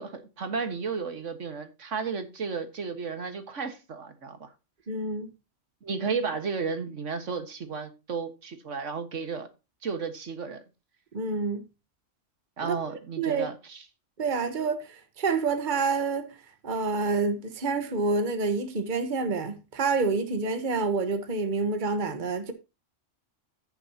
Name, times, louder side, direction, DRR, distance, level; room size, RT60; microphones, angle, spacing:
voice 1, 0.0-4.5 5.8-9.5 9.8-10.6 12.6-13.8, right 5 dB, 80° right, 1.8 m, -33 dB
voice 2, 4.9-5.3 11.1-11.7 12.6-12.8 13.2-13.5 14.2-16.3 16.6-22.5, right 4 dB, 40° right, 1.3 m, -28 dB
15.0 x 7.0 x 2.8 m
omnidirectional pair, 1.3 m